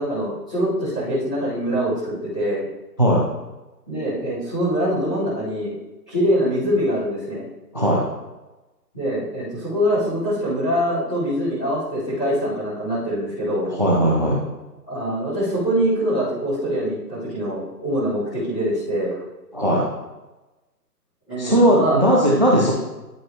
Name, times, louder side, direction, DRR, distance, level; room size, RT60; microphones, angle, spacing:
voice 1, 0.0-2.6 3.9-5.7 6.1-7.4 8.9-13.7 14.9-19.2 21.3-22.0, equal, 5° left, -20 dB, 1.0 m, -24 dB
voice 2, 13.7-14.4 19.5-19.8 21.4-22.7, equal, 30° right, -3 dB, 0.6 m, -17 dB
11.0 x 5.0 x 3.0 m, 1.1 s
hypercardioid pair, 175°, 50 cm